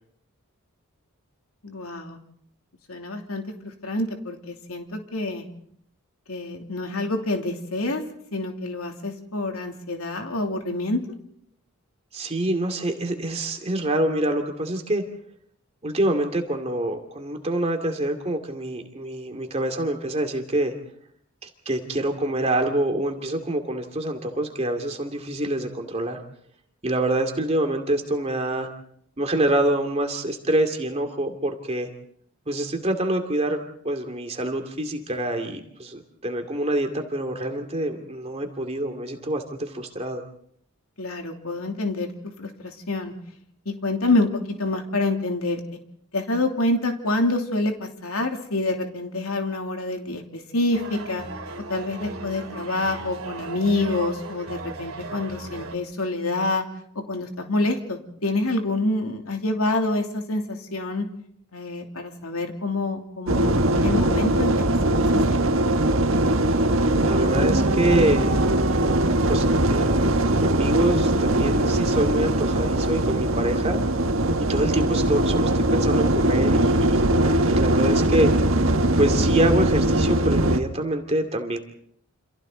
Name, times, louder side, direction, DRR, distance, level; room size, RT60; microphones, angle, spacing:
voice 1, 1.6-2.2 2.9-5.5 6.3-8.0 8.3-11.0 41.0-42.1 42.4-43.1 43.8-44.3 44.6-45.6 46.1-51.2 51.7-56.6 57.1-61.1 61.5-64.5 64.8-65.2, left 2 dB, 85° left, 3 dB, 2.9 m, -27 dB
voice 2, 12.1-15.0 15.8-20.7 21.7-26.2 26.8-28.7 29.2-31.9 32.5-40.2 67.0-68.3 69.3-73.8 74.5-78.3 79.0-81.6, right 1 dB, 30° right, 5 dB, 2.5 m, -26 dB
sound 1, 50.7-55.8, right 3 dB, 85° right, 3.4 m, -37 dB
sound 2, 63.3-80.6, right 1 dB, 65° right, 1.5 m, -21 dB
29.0 x 27.0 x 4.0 m, 0.66 s
head